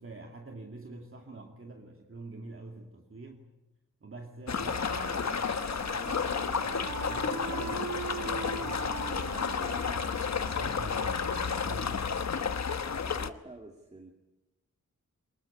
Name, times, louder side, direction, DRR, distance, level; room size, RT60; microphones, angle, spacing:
voice 1, 0.0-3.5 4.0-9.9 10.3-12.4, right 3 dB, 40° right, 3 dB, 2.5 m, -46 dB
sound 1, 4.5-13.3, left 6 dB, 60° left, 1.2 m, -32 dB
Wind instrument woodwind instrument, 4.6-12.0, right 5 dB, 70° right, 1.9 m, -41 dB
voice 2, 13.0-14.1, right 2 dB, 20° right, 3 dB, 2.3 m, -48 dB
23.5 x 21.0 x 9.8 m, 0.98 s
wide cardioid pair, 100°, 31 cm